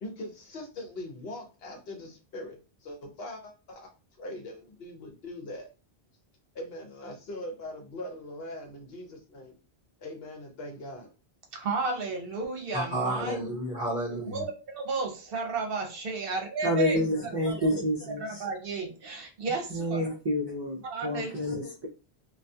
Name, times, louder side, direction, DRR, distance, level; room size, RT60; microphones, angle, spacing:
voice 1, 0.0-3.9 4.2-5.7 6.5-9.5 10.0-11.1, left 1 dB, 70° left, 0.9 m, -41 dB
voice 2, 11.5-13.4 14.3-17.0 17.4-17.8 18.2-20.1 20.8-21.6, right 4 dB, 65° right, 0.8 m, -33 dB
voice 3, 12.7-14.4, right 1 dB, 40° left, 1.1 m, -31 dB
voice 4, 16.6-18.5 19.7-21.9, left 1 dB, 40° right, 0.4 m, -29 dB
2.3 x 2.3 x 2.6 m
omnidirectional pair, 1.1 m